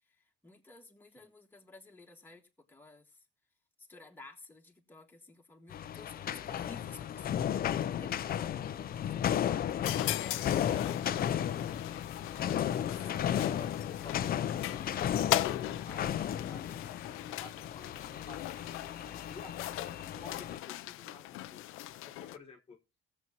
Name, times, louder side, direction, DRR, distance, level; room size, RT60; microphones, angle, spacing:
voice 1, 0.1-3.2 3.8-11.8 12.3-13.2, left 2 dB, 10° left, 1.6 m, -55 dB
sound 1, 5.7-20.6, left 10 dB, 45° left, 0.6 m, -34 dB
sound 2, 9.8-22.4, left 15 dB, 90° left, 0.6 m, -39 dB
voice 2, 13.4-16.9 17.2-18.6 18.9-19.5 19.8-21.6 22.1-22.8, left 4 dB, 30° left, 1.4 m, -53 dB
19.0 x 7.2 x 2.9 m
cardioid pair, 130°, 21 cm